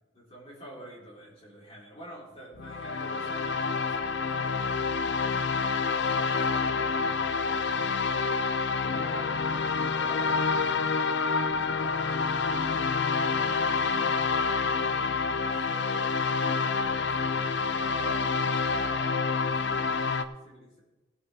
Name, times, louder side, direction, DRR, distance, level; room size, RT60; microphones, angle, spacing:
voice 1, 0.1-5.1 6.1-8.2 8.7-9.4 9.7-10.4 10.7-12.6 13.1-14.1 15.0-16.1 16.4-20.1 20.4-20.8, right 1 dB, 30° left, -4 dB, 3.7 m, -47 dB
sound 1, 2.6-20.2, left 4 dB, 60° left, 0.6 m, -28 dB
18.5 x 8.7 x 3.5 m, 1.1 s
head